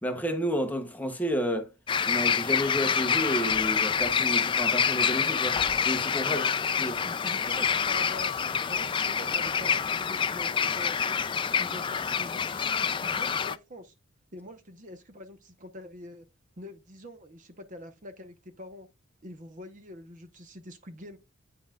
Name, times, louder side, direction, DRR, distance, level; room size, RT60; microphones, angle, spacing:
voice 1, 0.0-1.7 2.1-5.6 5.8-6.4 6.8-7.0, equal, 10° left, 0.8 m, -30 dB
sound 1, 1.9-13.6, left 6 dB, 25° left, 0.3 m, -27 dB
voice 2, 6.2-11.3 11.6-13.9 14.3-16.3 16.6-18.9 19.2-21.2, equal, 40° right, 0.9 m, -45 dB
8.8 x 5.3 x 2.4 m
head